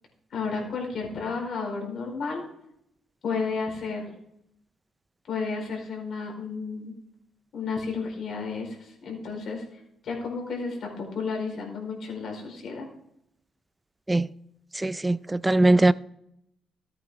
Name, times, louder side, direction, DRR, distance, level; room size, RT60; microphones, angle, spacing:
voice 1, 0.3-2.4 3.2-4.1 5.3-6.9 7.5-9.6 10.0-12.9, left 4 dB, 60° left, 4.8 m, -32 dB
voice 2, 14.8-15.9, right 2 dB, 15° right, 0.4 m, -21 dB
14.0 x 8.9 x 3.8 m
cardioid pair, 90°, 0 cm